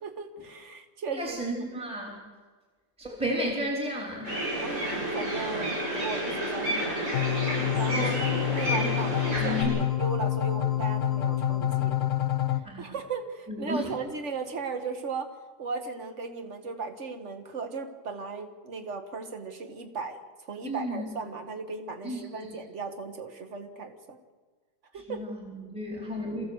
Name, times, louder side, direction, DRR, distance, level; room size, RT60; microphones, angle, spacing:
voice 1, 0.0-1.4 4.6-7.0 7.8-12.0 12.8-15.3 15.6-24.2 24.9-25.3, right 4 dB, 45° right, 7 dB, 2.0 m, -36 dB
voice 2, 1.1-2.2 3.0-4.4 7.9-9.8 12.6-13.0 13.5-13.9 20.6-21.0 22.0-22.6 24.9-26.4, equal, 5° right, -2 dB, 3.9 m, -33 dB
sound 1, 4.2-9.6, right 1 dB, 80° right, 8.0 m, -30 dB
sound 2, 7.1-12.6, left 12 dB, 55° left, 1.4 m, -27 dB
27.0 x 15.5 x 8.0 m, 1.4 s
omnidirectional pair, 1.8 m